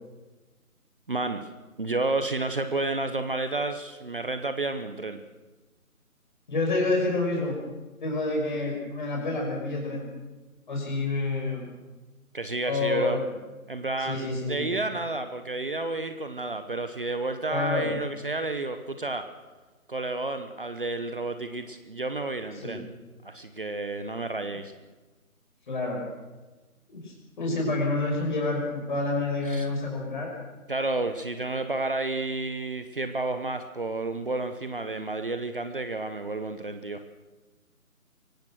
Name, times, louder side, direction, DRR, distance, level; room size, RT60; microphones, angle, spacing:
voice 1, 1.1-1.5 1.8-5.2 12.3-13.2 13.7-19.3 19.9-22.9 23.2-24.7 29.5-29.7 30.7-37.0, right 2 dB, 40° right, 9 dB, 1.0 m, -31 dB
voice 2, 6.5-7.6 8.0-10.1 10.7-11.7 12.6-13.3 14.0-14.6 17.5-17.9 22.5-22.8 25.7-26.0 26.9-30.3, left 2 dB, 35° left, 0 dB, 5.9 m, -28 dB
24.0 x 17.5 x 6.3 m, 1.2 s
figure-of-eight pair, 155°, 43 cm